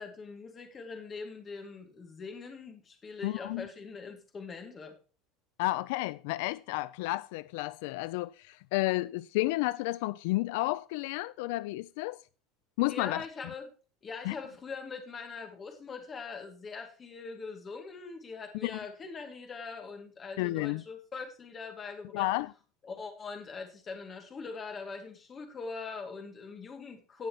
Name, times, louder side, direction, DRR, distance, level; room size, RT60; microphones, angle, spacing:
voice 1, 0.0-5.0 12.9-13.7 14.0-22.3 22.8-27.3, left 4 dB, 20° left, 2.3 m, -42 dB
voice 2, 3.2-3.7 5.6-12.2 12.8-13.2 14.2-14.4 18.6-18.7 20.4-20.8 22.1-22.5, left 20 dB, 70° left, 0.4 m, -31 dB
17.0 x 6.3 x 3.0 m
cardioid pair, 170°, 0 cm